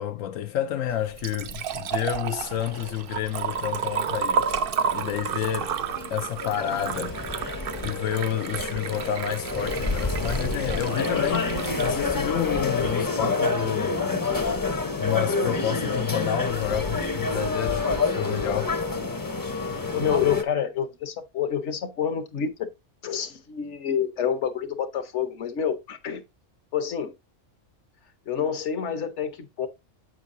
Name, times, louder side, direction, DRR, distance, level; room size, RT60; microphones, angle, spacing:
voice 1, 0.0-4.4 4.9-5.7 6.1-7.2 7.8-14.3 15.0-18.8, left 11 dB, 80° left, 1.0 m, -29 dB
Liquid, 0.9-12.9, right 7 dB, 60° right, 0.6 m, -32 dB
sound 1, 2.4-20.4, left 3 dB, 20° left, 0.6 m, -29 dB
voice 2, 19.9-22.7 23.0-26.2 26.7-27.1 28.3-29.7, left 8 dB, 65° left, 1.2 m, -28 dB
8.0 x 6.4 x 2.6 m
omnidirectional pair, 1.3 m